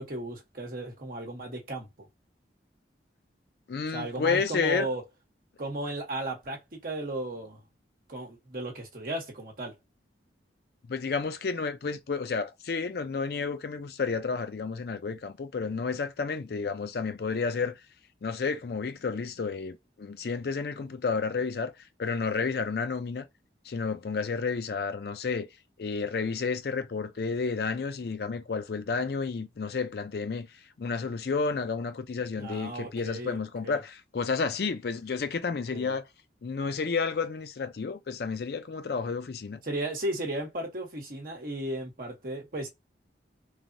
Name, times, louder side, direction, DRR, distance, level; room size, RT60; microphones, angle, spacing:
voice 1, 0.0-2.1 3.9-5.0 5.6-7.6 8.1-9.8 32.4-33.8 35.5-35.9 39.6-42.7, right 1 dB, 50° right, 1.0 m, -35 dB
voice 2, 3.7-4.9 10.9-17.7 18.2-21.7 22.0-23.3 23.7-25.5 25.8-30.5 30.8-36.1 36.4-39.6, left 5 dB, 55° left, 0.4 m, -31 dB
3.3 x 2.0 x 2.6 m
head